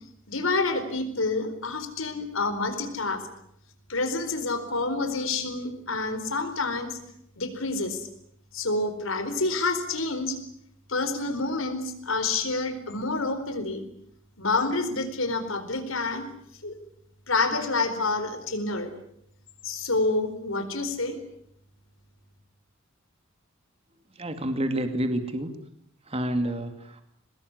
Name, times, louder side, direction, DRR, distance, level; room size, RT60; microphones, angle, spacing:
voice 1, 0.3-3.2 3.9-7.0 7.4-8.1 8.5-10.4 10.9-13.9 14.4-16.3 16.6-16.8 17.3-18.9 19.6-21.2, left 3 dB, 80° left, 9 dB, 4.4 m, -28 dB
voice 2, 24.2-25.5 26.1-27.0, right 1 dB, 30° right, 7 dB, 2.4 m, -28 dB
23.5 x 20.0 x 9.8 m, 0.72 s
head